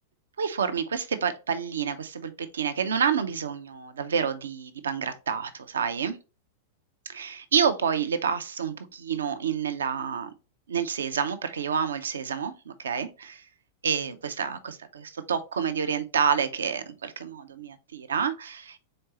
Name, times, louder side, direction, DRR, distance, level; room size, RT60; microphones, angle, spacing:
voice 1, 0.4-6.2 7.1-10.3 10.7-13.4 13.8-18.8, right 7 dB, 70° right, 0.5 m, -28 dB
4.3 x 3.8 x 2.9 m
figure-of-eight pair, 95°, 0 cm